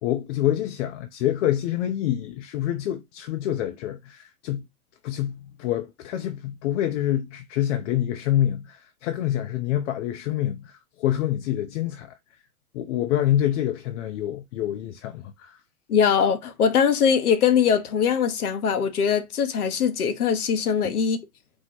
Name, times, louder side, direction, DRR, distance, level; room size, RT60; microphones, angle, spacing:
voice 1, 0.0-4.6 5.0-12.1 12.7-15.6 20.8-21.0, left 12 dB, 55° left, 0.6 m, -26 dB
voice 2, 15.9-21.2, left 7 dB, 85° left, 0.9 m, -21 dB
4.4 x 2.1 x 4.4 m
hypercardioid pair, 115°, 44 cm